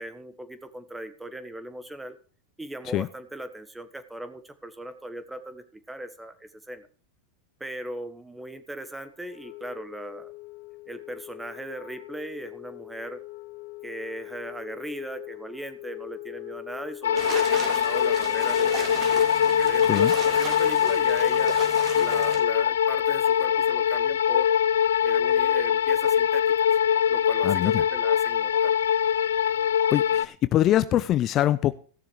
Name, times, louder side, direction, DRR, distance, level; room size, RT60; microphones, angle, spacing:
voice 1, 0.0-2.2 2.6-6.9 7.6-10.3 10.9-13.2 13.8-18.9 19.4-21.5 21.9-24.5 25.0-26.4 27.1-28.7, right 1 dB, 5° right, 10 dB, 1.5 m, -38 dB
Wind instrument woodwind instrument, 9.2-19.0, left 21 dB, 70° left, 1.1 m, -42 dB
sound 1, 17.0-30.3, left 9 dB, 85° left, 0.4 m, -23 dB
sound 2, 17.1-22.4, right 5 dB, 35° right, 2.7 m, -36 dB
voice 2, 27.4-27.8 29.9-31.7, left 13 dB, 40° left, 14 dB, 0.6 m, -23 dB
16.0 x 6.9 x 4.7 m, 0.41 s
hypercardioid pair, 110°, 0 cm